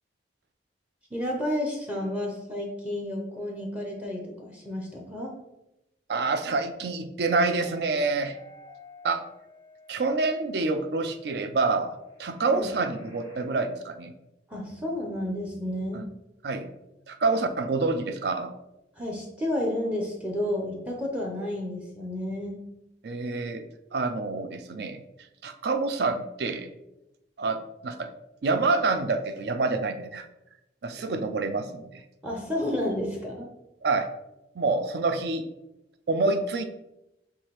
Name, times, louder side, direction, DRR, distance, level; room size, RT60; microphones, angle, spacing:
voice 1, 1.1-5.3 12.5-12.7 14.5-16.0 19.0-22.6 32.2-33.5, left 1 dB, 5° right, -1 dB, 0.6 m, -31 dB
voice 2, 6.1-8.4 9.0-9.2 9.9-14.1 16.4-16.7 17.1-18.5 23.0-23.6 23.9-25.0 25.4-26.7 27.4-28.1 28.4-30.3 30.8-32.0 33.8-34.1 34.6-35.4 36.1-36.6, right 3 dB, 60° right, 9 dB, 0.4 m, -27 dB
sound 1, 7.4-13.4, left 3 dB, 25° right, 1.2 m, -52 dB
4.8 x 3.2 x 3.0 m, 0.90 s
head